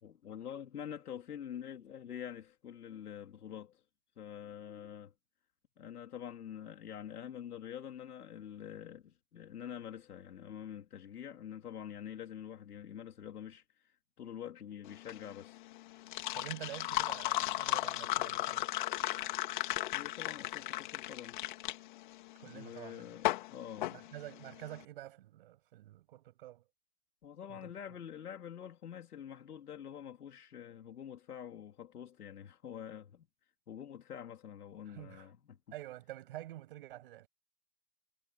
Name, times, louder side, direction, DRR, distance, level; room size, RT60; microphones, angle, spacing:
voice 1, 0.0-3.8 4.2-5.1 5.8-15.6 19.9-21.4 22.4-24.1 27.2-33.3 33.7-35.6, left 9 dB, 90° left, 3.2 m, -46 dB
sound 1, 14.9-24.7, left 16 dB, 35° left, 2.6 m, -36 dB
voice 2, 16.3-18.7 22.4-23.1 23.9-26.6 27.5-27.7 34.9-35.3 35.7-37.3, right 15 dB, 40° right, 6.4 m, -48 dB
hypercardioid pair, 175°, 44 cm